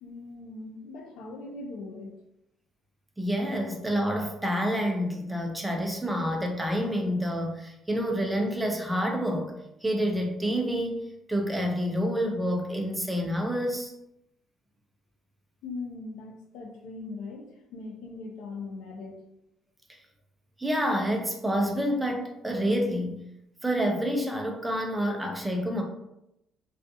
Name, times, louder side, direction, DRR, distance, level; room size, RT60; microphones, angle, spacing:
voice 1, 0.0-2.1 15.6-19.2, left 3 dB, 85° left, 2 dB, 0.5 m, -40 dB
voice 2, 3.2-9.5 9.8-11.0 11.3-13.9 20.6-23.2 23.6-25.8, equal, 5° right, 1 dB, 0.4 m, -28 dB
2.3 x 2.3 x 2.6 m, 0.84 s
cardioid pair, 155°, 0 cm